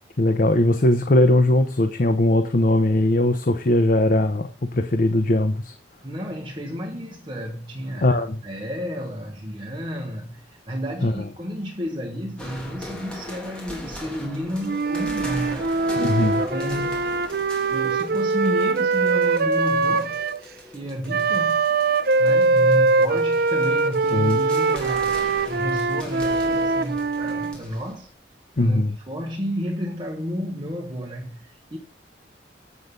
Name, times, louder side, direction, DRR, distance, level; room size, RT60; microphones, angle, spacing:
voice 1, 0.2-5.7 8.0-8.4 11.0-11.1 16.0-16.4 24.1-24.4 28.6-29.0, left 1 dB, 50° left, 0.8 m, -20 dB
voice 2, 6.0-15.7 16.4-17.2 17.7-20.2 20.7-21.7 22.2-25.2 25.5-28.1 28.6-31.8, equal, 25° right, 1.4 m, -31 dB
sound 1, 12.4-28.1, left 1 dB, 5° left, 3.1 m, -40 dB
Wind instrument woodwind instrument, 14.6-20.4 21.1-27.6, right 3 dB, 55° right, 0.7 m, -22 dB
8.4 x 7.7 x 5.4 m
head